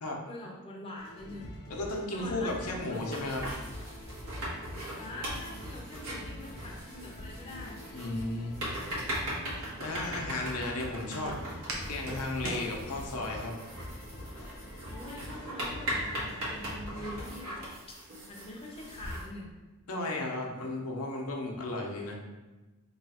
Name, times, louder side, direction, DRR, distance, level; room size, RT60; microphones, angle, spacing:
voice 1, 0.2-1.6 2.1-3.4 4.9-7.9 14.9-18.0 18.3-19.5, left 1 dB, 25° left, -2 dB, 0.5 m, -44 dB
sound 1, 1.0-17.5, left 1 dB, 70° left, 0.9 m, -45 dB
voice 2, 1.7-3.4 7.9-8.6 9.8-11.4 11.9-13.5 14.3-14.5 19.9-22.1, left 2 dB, 90° left, 0 dB, 0.7 m, -34 dB
sound 2, 2.9-19.3, equal, 90° right, 1.3 m, -40 dB
Walk footsteps, 8.8-13.4, right 1 dB, 65° right, 0.7 m, -42 dB
3.0 x 2.3 x 4.2 m, 1.2 s
head